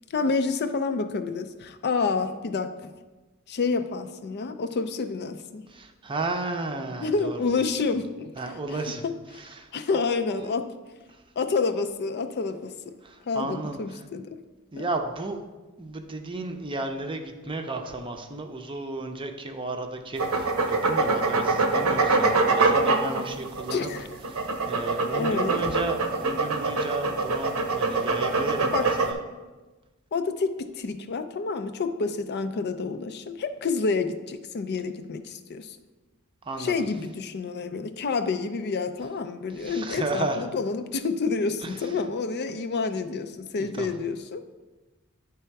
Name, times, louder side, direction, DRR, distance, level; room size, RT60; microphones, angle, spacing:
voice 1, 0.1-2.9 3.5-5.6 7.0-8.3 8.7-8.8 9.0-9.4 9.7-10.7 11.4-12.8 13.3-14.4 14.8-14.9 23.7-24.1 25.1-25.7 28.7-28.9 30.1-35.8 36.6-44.4, left 4 dB, 50° left, 9 dB, 0.4 m, -28 dB
voice 2, 5.7-7.4 8.4-9.0 9.4-9.7 9.9-10.5 13.0-13.8 14.7-15.4 15.8-23.9 24.3-28.7 29.0-29.2 36.4-36.7 39.6-40.4 41.6-41.7 43.6-43.9, right 2 dB, 25° right, 5 dB, 0.6 m, -33 dB
sound 1, 20.2-29.1, right 3 dB, 85° right, 0.8 m, -24 dB
10.0 x 3.4 x 4.6 m, 1.2 s
head